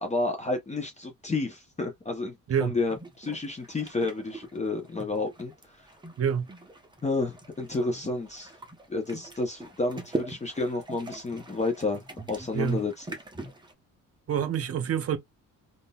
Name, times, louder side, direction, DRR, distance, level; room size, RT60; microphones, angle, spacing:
voice 1, 0.0-5.9 7.0-8.5 8.9-13.0, left 3 dB, 20° left, 0.7 m, -31 dB
sound 1, 2.8-13.7, right 2 dB, 15° right, 0.8 m, -42 dB
voice 2, 6.2-6.5 12.5-12.9 14.3-15.2, right 8 dB, 45° right, 0.7 m, -27 dB
3.7 x 2.5 x 2.3 m
cardioid pair, 130°, 34 cm